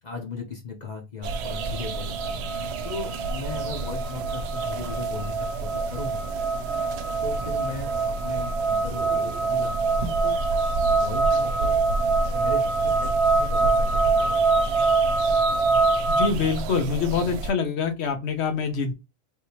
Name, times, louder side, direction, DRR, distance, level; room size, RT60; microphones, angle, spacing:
voice 1, 0.0-2.4 2.8-6.2 7.2-10.4 10.9-11.8 12.3-14.7, left 4 dB, 45° left, 2 dB, 0.8 m, -37 dB
sound 1, 1.2-17.5, right 3 dB, 85° right, 0.8 m, -31 dB
sound 2, 1.3-16.3, right 4 dB, 65° right, 0.3 m, -25 dB
voice 2, 16.1-18.9, left 5 dB, 85° left, 6 dB, 1.1 m, -25 dB
3.5 x 2.8 x 2.8 m, 0.25 s
omnidirectional pair, 1.1 m